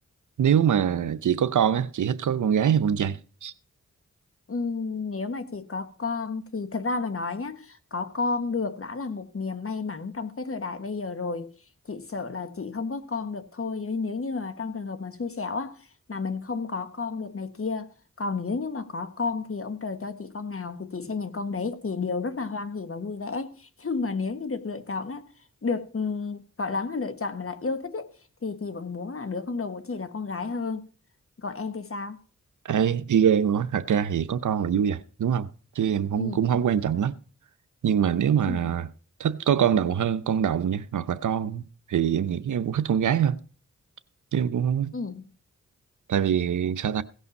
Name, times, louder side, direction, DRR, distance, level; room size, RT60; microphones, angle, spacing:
voice 1, 0.4-3.5 32.6-35.5 35.8-37.1 37.8-38.9 39.2-43.4 44.3-44.9 46.1-47.0, right 8 dB, 75° right, 0.7 m, -24 dB
voice 2, 4.5-11.5 11.9-25.3 25.6-28.1 28.4-30.8 31.4-32.2 36.2-36.5 38.4-38.7 44.9-45.2, left 4 dB, 45° left, 1.4 m, -31 dB
16.5 x 5.6 x 5.3 m
cardioid pair, 40°, 30 cm